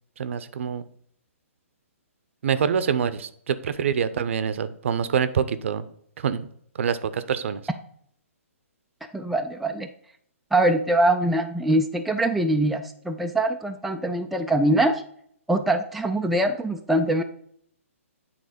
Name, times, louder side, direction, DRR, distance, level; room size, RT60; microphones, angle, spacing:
voice 1, 0.2-0.8 2.4-5.8 6.2-6.5 6.8-7.6, right 7 dB, 60° right, 14 dB, 0.6 m, -25 dB
voice 2, 9.1-9.9 10.5-15.0 15.5-17.2, right 1 dB, ahead, 4 dB, 0.3 m, -23 dB
8.8 x 3.6 x 5.0 m, 0.65 s
hypercardioid pair, 145°, 8 cm